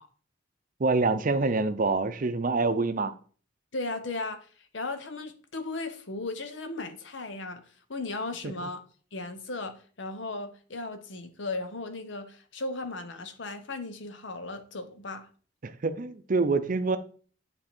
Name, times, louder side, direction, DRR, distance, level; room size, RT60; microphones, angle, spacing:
voice 1, 0.8-3.1 15.6-17.0, right 3 dB, 45° right, 0.6 m, -26 dB
voice 2, 3.7-7.6 7.9-8.8 9.1-15.3, left 2 dB, 75° left, 1.0 m, -36 dB
9.7 x 3.5 x 4.4 m
head